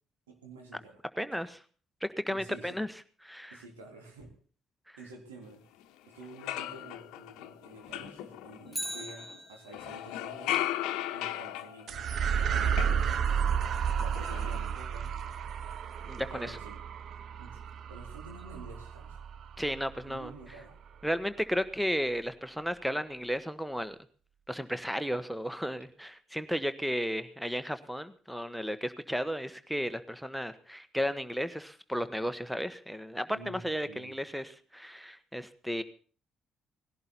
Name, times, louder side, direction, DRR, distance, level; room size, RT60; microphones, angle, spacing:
voice 1, 0.3-1.0 2.3-2.8 3.5-4.3 5.0-5.6 6.0-10.6 11.1-12.9 13.4-15.5 16.3-16.9 17.4-19.2 20.0-20.8 33.3-34.2, right 2 dB, 80° right, 1 dB, 3.5 m, -50 dB
voice 2, 1.2-1.6 2.0-2.9 3.2-3.6 16.1-16.6 19.6-20.3 21.0-24.0 24.5-35.8, equal, ahead, 13 dB, 1.3 m, -34 dB
sound 1, 5.8-5.9 6.2-9.3 9.7-13.6 13.9-14.6, left 13 dB, 65° left, 1.0 m, -37 dB
Bicycle, 8.7-10.1 18.4-18.5, right 1 dB, 20° right, 3.0 m, -40 dB
sound 2, 11.9-20.5, right 7 dB, 50° right, 0.8 m, -32 dB
19.5 x 16.5 x 4.2 m, 0.43 s
figure-of-eight pair, 45°, 0 cm